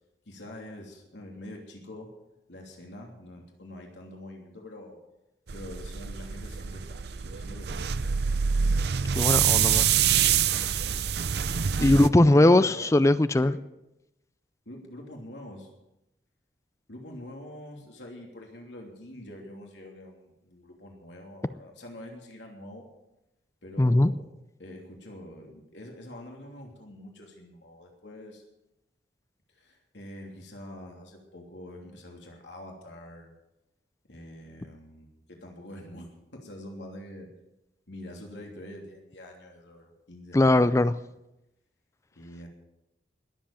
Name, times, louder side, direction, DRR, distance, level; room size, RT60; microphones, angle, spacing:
voice 1, 0.3-2.1 2.5-5.0 5.5-7.9 11.7-13.5 14.6-15.7 16.9-22.9 23.6-24.3 24.6-28.4 29.5-33.3 34.1-37.3 37.9-40.7 42.1-42.5, left 1 dB, 80° left, 1 dB, 3.0 m, -45 dB
sound 1, 5.5-12.1, right 8 dB, 60° right, 0.6 m, -26 dB
voice 2, 9.2-9.9 11.8-13.6 23.8-24.1 40.3-40.9, left 1 dB, 15° left, 15 dB, 0.4 m, -20 dB
20.5 x 7.7 x 7.1 m, 0.92 s
head